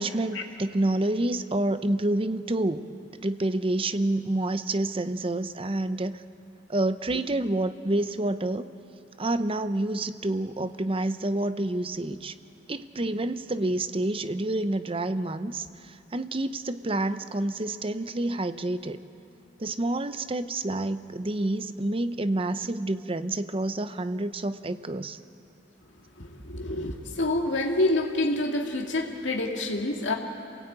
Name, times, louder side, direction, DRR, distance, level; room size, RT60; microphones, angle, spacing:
voice 1, 0.0-2.8 3.2-6.1 6.7-8.7 9.2-12.3 12.7-15.7 16.1-19.0 19.6-25.2, right 2 dB, 30° right, 11 dB, 0.7 m, -28 dB
voice 2, 26.2-30.1, left 2 dB, 75° left, 1 dB, 2.3 m, -27 dB
27.5 x 17.5 x 8.8 m, 2.6 s
head